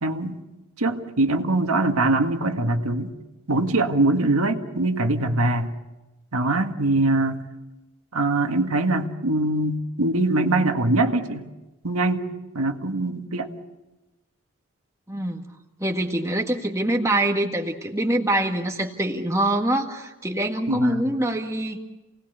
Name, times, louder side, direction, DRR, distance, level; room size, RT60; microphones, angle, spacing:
voice 1, 0.0-0.4 0.8-3.1 3.5-5.7 6.3-7.4 8.1-11.5 11.8-12.3 12.5-13.5 20.7-21.0, right 2 dB, 90° right, 5 dB, 1.9 m, -22 dB
voice 2, 15.1-15.4 15.8-21.8, right 1 dB, 15° right, 3 dB, 1.8 m, -24 dB
28.0 x 19.0 x 8.2 m, 1.1 s
head